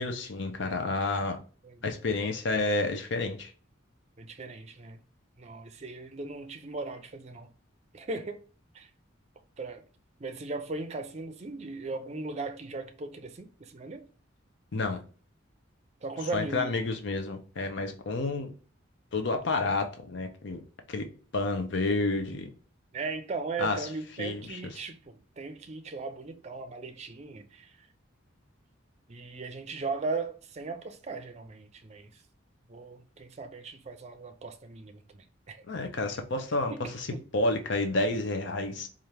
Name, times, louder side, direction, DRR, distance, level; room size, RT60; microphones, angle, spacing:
voice 1, 0.0-1.4 1.8-3.5 14.7-15.0 16.3-18.5 19.1-20.6 20.9-21.1 21.3-22.5 23.6-23.9 24.2-24.6 35.7-37.1 37.3-38.9, left 2 dB, 60° left, 0.6 m, -30 dB
voice 2, 4.2-5.0 5.4-7.5 7.9-8.4 8.7-8.9 9.6-9.8 10.2-14.0 16.0-16.8 22.9-27.7 29.1-32.1 32.7-35.6 36.7-36.8 37.1-37.2, right 3 dB, 35° right, 0.5 m, -38 dB
4.3 x 2.5 x 3.3 m
head